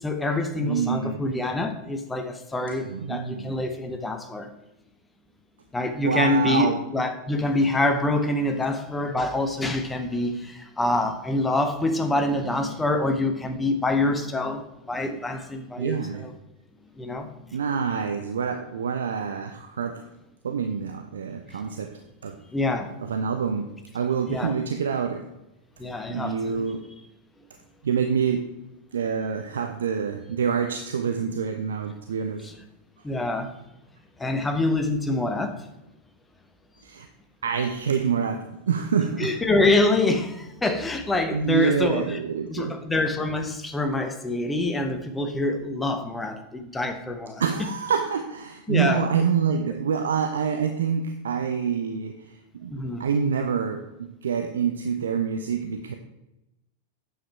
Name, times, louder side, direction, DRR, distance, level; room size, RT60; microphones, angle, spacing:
voice 1, 0.0-4.5 5.7-16.3 17.0-17.3 21.5-21.7 22.5-22.9 24.3-24.5 25.8-26.6 32.4-32.5 33.0-33.5 34.2-35.6 39.2-42.2 42.5-47.4 48.7-49.0 52.7-53.1, left 2 dB, 10° left, 6 dB, 1.2 m, -26 dB
voice 2, 0.6-1.2 2.9-3.5 6.0-6.8 15.8-16.2 17.5-20.0 20.4-21.9 22.2-22.4 23.0-25.3 26.1-26.8 27.8-28.5 28.9-32.4 36.8-37.1 37.4-39.3 41.3-42.8 47.4-52.7 53.0-55.9, right 6 dB, 65° right, 6 dB, 0.7 m, -26 dB
9.2 x 7.6 x 4.5 m, 0.92 s
figure-of-eight pair, 90°, 0 cm